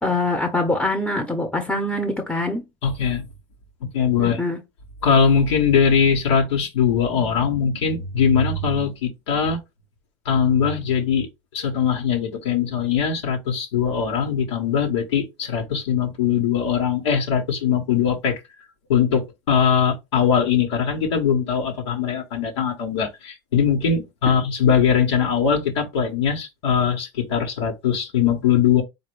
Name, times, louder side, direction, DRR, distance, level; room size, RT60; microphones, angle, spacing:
voice 1, 0.0-2.6 4.2-4.6, left 2 dB, 5° left, 1.0 m, -24 dB
voice 2, 2.8-3.3 3.9-4.4 5.0-9.6 10.2-11.3 11.5-18.4 18.9-28.8, left 7 dB, 75° left, 1.4 m, -21 dB
4.1 x 2.6 x 4.8 m
hypercardioid pair, 85°, 14 cm